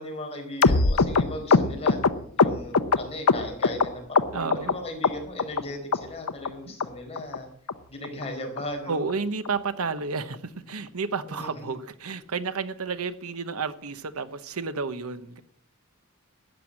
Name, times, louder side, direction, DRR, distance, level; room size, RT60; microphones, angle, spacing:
voice 1, 0.0-2.0 2.4-7.5 7.9-9.0 11.4-11.7, left 1 dB, 30° left, 1 dB, 4.7 m, -37 dB
sound 1, 0.6-3.9 4.1-4.7 5.0-5.6 5.9-6.0 6.3-6.5 6.8-6.9 7.2-7.4 7.7-7.8 8.0-8.2 8.6-8.7 8.9-9.1 9.4-9.5 9.8-10.0 10.3-10.4, left 4 dB, 90° left, 0.8 m, -21 dB
voice 2, 4.3-4.8 6.7-6.8 8.9-15.4, right 4 dB, 90° right, 12 dB, 1.0 m, -31 dB
13.5 x 9.8 x 7.5 m, 0.63 s
head